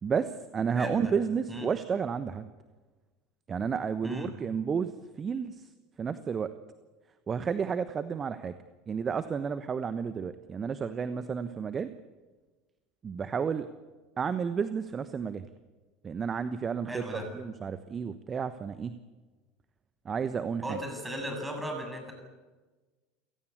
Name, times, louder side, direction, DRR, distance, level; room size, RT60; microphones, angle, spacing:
voice 1, 0.0-2.5 3.5-5.7 6.0-6.5 7.3-8.6 8.9-11.9 13.0-13.7 14.2-15.5 16.0-19.0 20.0-20.8, right 6 dB, 30° right, 12 dB, 1.1 m, -31 dB
voice 2, 0.8-1.1 1.5-1.7 4.0-4.3 16.9-17.3 20.6-22.1, equal, 10° right, 4 dB, 7.5 m, -36 dB
29.0 x 17.0 x 8.2 m, 1.3 s
figure-of-eight pair, 75°, 0 cm